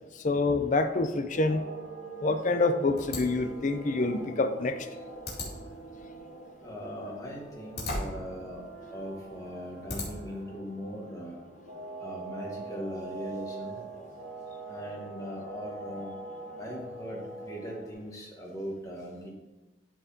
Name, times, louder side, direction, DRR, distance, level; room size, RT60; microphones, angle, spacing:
voice 1, 0.1-1.6 2.2-4.9, left 3 dB, 40° left, 9 dB, 0.5 m, -27 dB
sound 1, 1.3-17.9, right 3 dB, 70° right, 2.1 m, -44 dB
sound 2, 3.0-10.4, left 2 dB, 55° left, 2.3 m, -41 dB
voice 2, 6.6-8.6 8.9-11.4 12.0-13.8 14.7-16.2 16.6-19.3, equal, 15° left, -3 dB, 1.4 m, -40 dB
12.0 x 4.6 x 2.8 m, 1.1 s
head